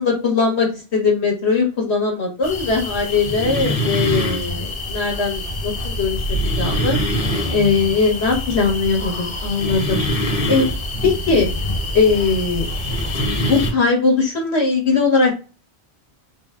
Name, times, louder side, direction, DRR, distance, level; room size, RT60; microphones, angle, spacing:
voice 1, 0.0-6.2 6.6-7.0 7.5-10.7 11.0-11.5 11.9-12.7 13.4-15.4, left 4 dB, 80° left, 0 dB, 1.7 m, -20 dB
sound 1, 2.4-13.7, left 1 dB, 35° left, 0.9 m, -24 dB
3.8 x 2.3 x 3.7 m, 0.33 s
omnidirectional pair, 1.1 m